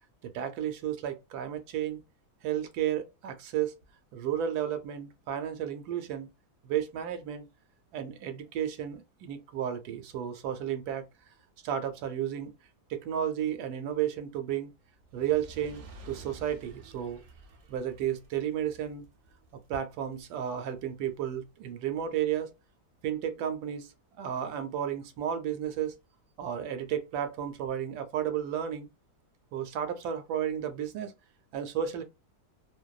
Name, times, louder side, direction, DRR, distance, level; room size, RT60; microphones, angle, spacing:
voice 1, 0.2-2.0 2.4-3.7 4.1-6.3 6.6-7.5 7.9-11.0 11.6-12.5 12.9-14.7 15.1-17.2 17.7-19.0 19.7-22.5 23.0-26.0 26.4-28.9 29.5-31.1 31.5-32.0, right 9 dB, 80° right, 1.1 m, -33 dB
Fire, 15.0-21.4 22.1-22.2, right 3 dB, 60° right, 0.6 m, -52 dB
2.6 x 2.1 x 2.3 m
omnidirectional pair, 1.7 m